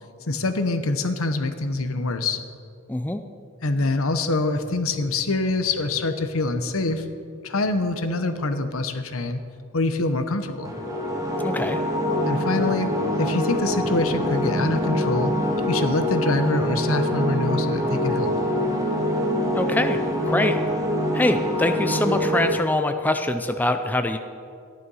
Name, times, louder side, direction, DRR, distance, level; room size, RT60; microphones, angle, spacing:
voice 1, 0.3-2.4 3.6-7.1 7.4-9.4 9.7-10.7 12.3-12.9 13.2-15.3 15.7-18.3, left 2 dB, 80° left, 9 dB, 1.0 m, -25 dB
voice 2, 2.9-3.2 11.4-11.8 19.5-20.6 21.1-24.2, left 1 dB, 10° left, 8 dB, 0.5 m, -24 dB
sound 1, 10.6-22.5, equal, 15° right, 1.7 m, -24 dB
13.5 x 11.0 x 5.6 m, 2.3 s
head